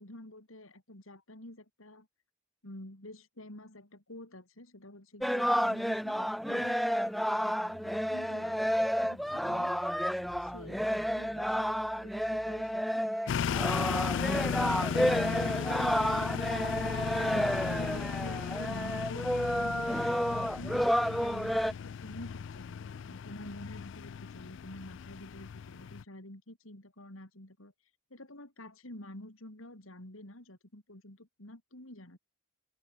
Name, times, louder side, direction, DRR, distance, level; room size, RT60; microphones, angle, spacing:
voice 1, 0.0-2.1 2.6-7.2 7.4-9.8 10.4-27.7 28.1-32.2, left 1 dB, 70° left, 4.2 m, -49 dB
sound 1, 5.2-21.7, equal, ahead, 0.8 m, -31 dB
sound 2, 7.6-13.1, equal, 80° right, 6.3 m, -55 dB
sound 3, 13.3-26.0, left 7 dB, 55° left, 0.3 m, -36 dB
head